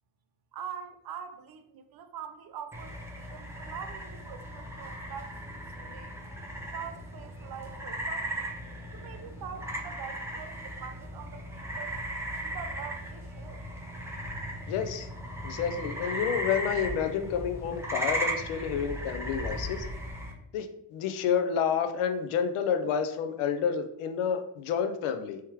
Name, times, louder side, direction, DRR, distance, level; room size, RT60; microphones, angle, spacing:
voice 1, 0.5-6.1 6.7-8.5 8.9-12.0 12.4-13.6, right 8 dB, 50° right, 0.5 m, -44 dB
sound 1, 2.7-20.3, right 1 dB, 5° right, 0.6 m, -37 dB
voice 2, 14.7-15.1 15.4-19.9 20.5-25.4, left 7 dB, 90° left, 0.7 m, -29 dB
3.6 x 3.0 x 4.5 m
cardioid pair, 135°, 49 cm